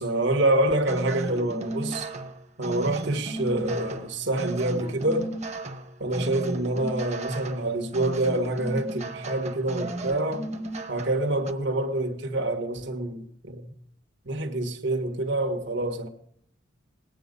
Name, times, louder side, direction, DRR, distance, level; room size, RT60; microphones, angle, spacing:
voice 1, 0.0-2.1 2.6-5.3 6.0-10.5 10.9-13.7 14.2-16.1, right 1 dB, 60° right, 1.7 m, -26 dB
sound 1, 0.9-11.5, right 2 dB, 35° right, 1.2 m, -35 dB
20.5 x 9.1 x 5.4 m
head